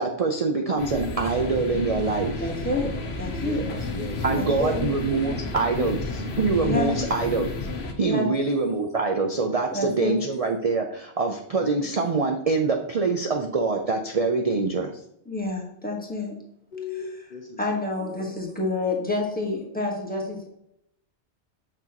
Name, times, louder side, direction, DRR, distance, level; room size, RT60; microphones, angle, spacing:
voice 1, 0.0-2.4 4.2-6.0 6.4-7.5 8.0-14.9, right 3 dB, 45° right, 3 dB, 0.5 m, -24 dB
sound 1, 0.8-7.9, left 2 dB, 65° left, 1.1 m, -31 dB
voice 2, 2.4-2.9 3.2-3.6 4.4-4.8 6.6-6.9 8.0-8.3 9.7-10.2 15.3-16.3 17.6-20.5, left 2 dB, 10° left, -1 dB, 1.3 m, -28 dB
voice 3, 3.3-4.6 16.7-18.3 19.3-19.6, left 3 dB, 45° left, 2 dB, 0.8 m, -36 dB
6.7 x 5.9 x 2.9 m, 0.74 s
omnidirectional pair, 1.2 m